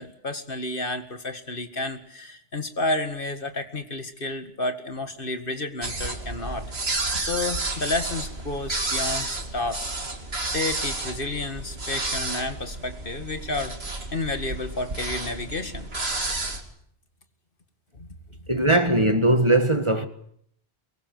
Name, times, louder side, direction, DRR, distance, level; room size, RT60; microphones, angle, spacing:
voice 1, 0.0-6.7 7.2-9.8 10.5-13.7 14.1-15.9 17.9-18.1, left 2 dB, 55° left, 2.2 m, -31 dB
sound 1, 5.8-16.6, right 2 dB, 70° right, 3.0 m, -31 dB
voice 2, 18.5-20.1, right 1 dB, 25° right, 1.8 m, -20 dB
23.5 x 21.5 x 7.8 m
omnidirectional pair, 1.1 m